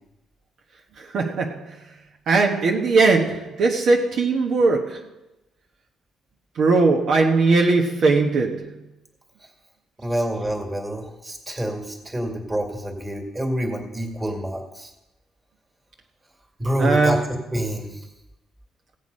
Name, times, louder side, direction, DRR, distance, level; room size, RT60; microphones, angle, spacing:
voice 1, 1.0-1.7 2.3-5.1 6.6-8.7 16.8-17.2, right 3 dB, 55° right, 1.2 m, -19 dB
voice 2, 10.0-14.9 16.6-17.2 17.5-18.0, equal, 15° right, 2.2 m, -27 dB
16.0 x 8.1 x 5.4 m
cardioid pair, 135°, 0 cm